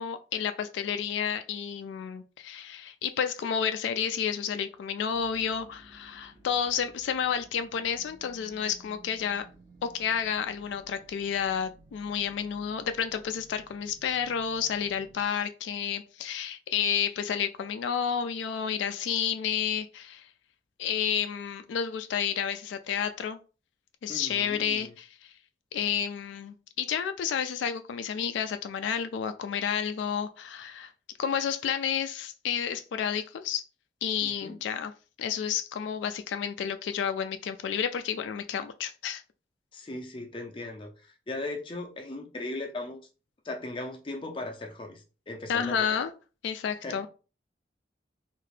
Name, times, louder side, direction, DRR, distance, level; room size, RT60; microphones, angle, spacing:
voice 1, 0.0-9.5 9.8-20.3 20.8-23.4 24.0-25.3 25.7-30.9 31.2-33.6 34.0-34.9 35.2-39.2 45.5-46.1 46.4-47.1, left 8 dB, 85° left, 0.3 m, -30 dB
sound 1, 5.0-15.3, right 2 dB, 25° right, 0.5 m, -56 dB
voice 2, 24.1-24.9 34.2-34.6 39.7-40.9 41.3-43.0 43.4-46.0 46.8-47.1, left 2 dB, 30° left, 0.5 m, -38 dB
2.7 x 2.5 x 3.2 m
head